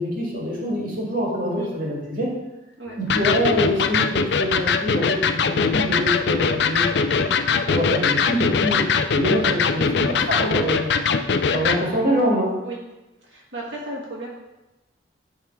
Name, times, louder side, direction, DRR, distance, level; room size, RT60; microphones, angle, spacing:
voice 1, 0.0-2.3 3.0-5.2 5.5-8.9 9.1-10.9 11.5-12.5, equal, 45° right, -3 dB, 1.9 m, -25 dB
Electric guitar, 3.1-11.8, left 5 dB, 65° left, 0.4 m, -21 dB
voice 2, 13.2-14.3, right 1 dB, 80° right, -4 dB, 1.6 m, -34 dB
11.0 x 3.6 x 4.6 m, 0.99 s
head